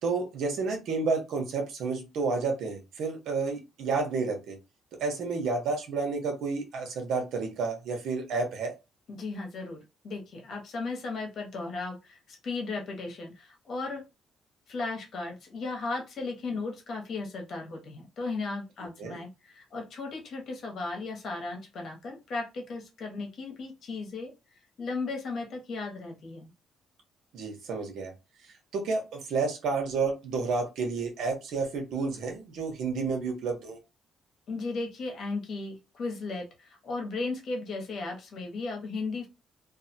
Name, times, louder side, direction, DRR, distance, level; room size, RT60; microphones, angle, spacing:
voice 1, 0.0-4.6 5.0-8.7 19.0-19.2 27.3-28.1 28.7-33.8, right 4 dB, 80° right, 2 dB, 0.9 m, -30 dB
voice 2, 9.1-14.0 14.7-24.3 24.8-26.5 34.5-39.3, left 3 dB, 65° left, 1 dB, 1.1 m, -36 dB
2.6 x 2.5 x 2.7 m, 0.25 s
cardioid pair, 90°, 0 cm